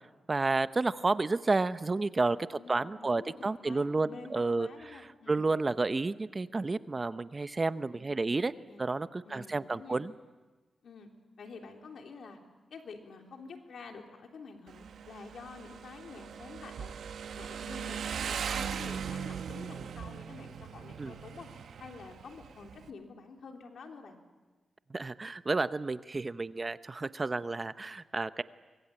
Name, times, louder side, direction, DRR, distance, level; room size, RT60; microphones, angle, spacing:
voice 1, 0.3-5.0 5.3-8.5 8.8-10.1 21.0-21.1 24.9-28.4, right 3 dB, 30° right, 13 dB, 0.8 m, -31 dB
voice 2, 2.5-5.4 7.9-8.8 9.2-10.0 10.8-11.1 11.4-12.4 12.7-17.0 17.3-21.5 21.8-24.2, left 4 dB, 75° left, 3 dB, 3.4 m, -49 dB
Motorcycle, 14.7-22.9, right 7 dB, 80° right, 1.1 m, -39 dB
24.5 x 22.5 x 8.9 m, 1.3 s
cardioid pair, 80°, 0 cm